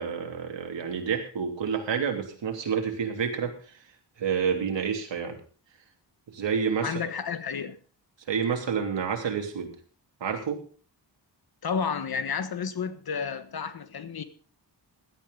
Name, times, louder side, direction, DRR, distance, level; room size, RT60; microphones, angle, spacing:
voice 1, 0.0-3.5 4.2-5.4 6.3-7.0 8.3-9.7 10.2-10.6, right 6 dB, 85° right, 3.1 m, -29 dB
voice 2, 6.8-7.8 11.6-14.2, left 6 dB, 55° left, 1.4 m, -31 dB
16.5 x 12.5 x 3.9 m
wide cardioid pair, 140°, 43 cm